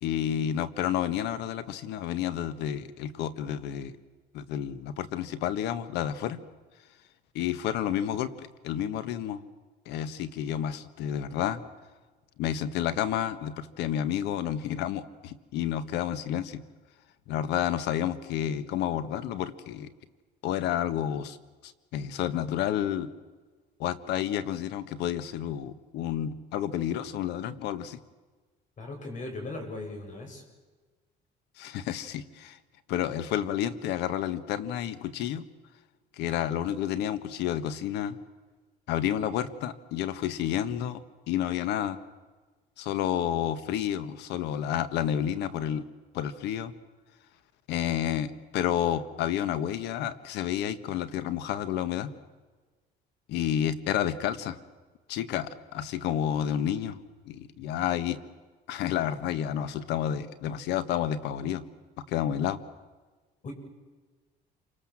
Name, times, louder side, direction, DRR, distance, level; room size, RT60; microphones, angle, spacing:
voice 1, 0.0-4.0 4.3-6.4 7.3-9.4 9.8-11.6 12.4-16.6 17.3-19.9 20.4-21.4 21.6-23.1 23.8-28.0 31.6-32.6 32.9-35.4 36.2-38.2 38.9-41.0 41.3-42.0 42.8-45.8 46.1-46.7 47.7-52.1 53.3-54.6 55.1-57.0 57.3-58.2 58.7-61.6 62.1-62.6, left 10 dB, 85° left, 13 dB, 1.6 m, -30 dB
voice 2, 28.8-30.4 63.4-63.5, left 2 dB, 50° left, 4 dB, 7.9 m, -38 dB
28.0 x 26.0 x 7.5 m, 1.3 s
cardioid pair, 110°, 17 cm